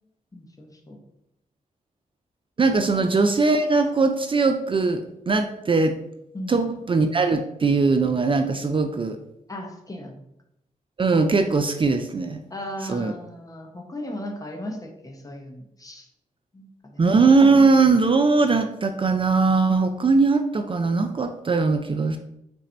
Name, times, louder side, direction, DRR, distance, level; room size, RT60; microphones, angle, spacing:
voice 1, 0.3-1.0 2.9-3.0 6.3-6.7 9.5-10.2 12.5-16.1 16.5-17.1, left 1 dB, 25° left, 3 dB, 0.9 m, -37 dB
voice 2, 2.6-6.0 6.5-9.2 11.0-12.4 12.9-13.1 17.0-22.2, right 4 dB, 35° right, 7 dB, 0.4 m, -20 dB
4.0 x 2.6 x 4.3 m, 0.82 s
cardioid pair, 60°, 15 cm